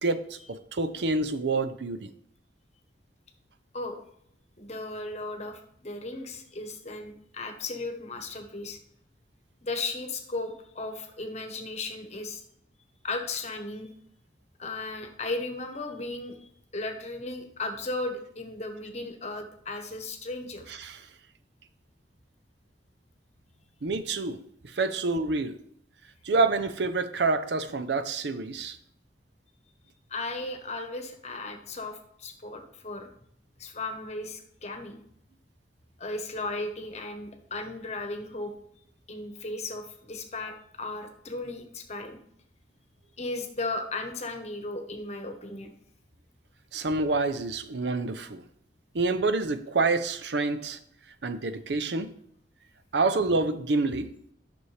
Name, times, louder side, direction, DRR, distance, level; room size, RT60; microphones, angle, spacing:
voice 1, 0.0-2.1 20.7-21.1 23.8-25.6 26.2-28.8 46.7-48.4 48.9-50.8 51.2-52.1 52.9-54.1, right 3 dB, 75° right, 10 dB, 0.6 m, -27 dB
voice 2, 4.6-8.8 9.6-12.4 13.0-13.9 14.6-20.7 30.1-33.1 33.6-35.0 36.0-38.5 39.1-42.2 43.2-45.7, left 2 dB, 40° left, 5 dB, 1.1 m, -36 dB
9.7 x 6.1 x 3.3 m, 0.70 s
head